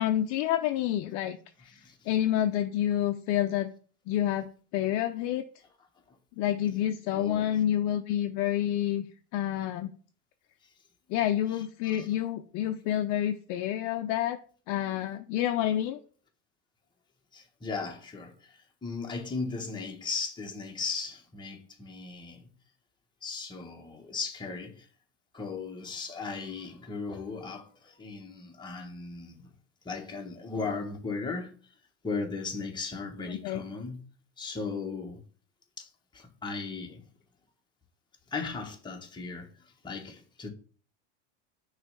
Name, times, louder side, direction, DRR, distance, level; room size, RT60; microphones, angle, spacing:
voice 1, 0.0-3.7 4.1-5.4 6.4-9.1 9.3-9.9 11.1-14.4 14.7-16.0 33.4-33.6, left 11 dB, 55° left, 0.5 m, -28 dB
voice 2, 1.7-2.1 6.1-6.2 7.1-7.5 10.6-10.7 11.8-12.1 17.3-22.5 23.2-24.9 25.3-29.5 29.8-31.7 32.0-34.1 34.4-35.2 35.8-37.0 38.3-40.5, left 4 dB, 10° left, 1.2 m, -37 dB
5.9 x 3.2 x 5.3 m
supercardioid pair, 115°, 35 cm